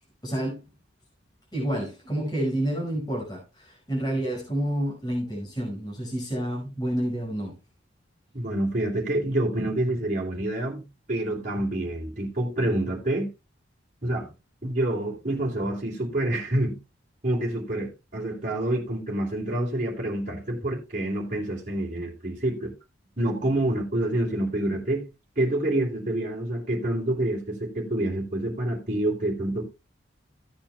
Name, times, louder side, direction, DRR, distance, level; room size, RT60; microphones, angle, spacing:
voice 1, 0.2-0.7 1.5-7.5, right 1 dB, 20° left, 5.2 m, -29 dB
voice 2, 8.3-13.3 14.0-14.3 14.6-16.8 17.2-22.7 23.2-25.0 25.3-29.6, right 1 dB, 40° right, 3.0 m, -27 dB
16.0 x 8.8 x 2.2 m
head